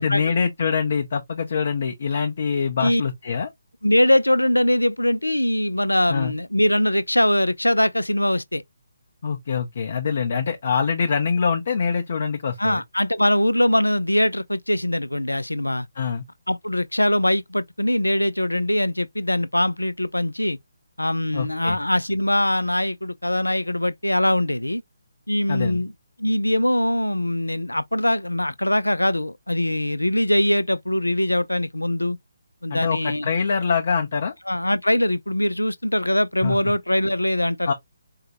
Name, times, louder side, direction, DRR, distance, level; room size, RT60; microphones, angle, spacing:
voice 1, 0.0-3.5 6.1-6.3 9.2-12.8 16.0-16.2 21.3-21.8 25.5-25.8 32.7-34.3 36.4-36.6 37.7-37.8, left 6 dB, 45° left, 0.7 m, -24 dB
voice 2, 3.8-8.6 12.6-15.9 16.5-20.6 21.0-24.8 25.3-25.9 26.2-32.2 32.6-33.3 34.5-37.7, left 1 dB, 80° left, 0.4 m, -22 dB
4.5 x 2.2 x 2.9 m
figure-of-eight pair, 145°, 0 cm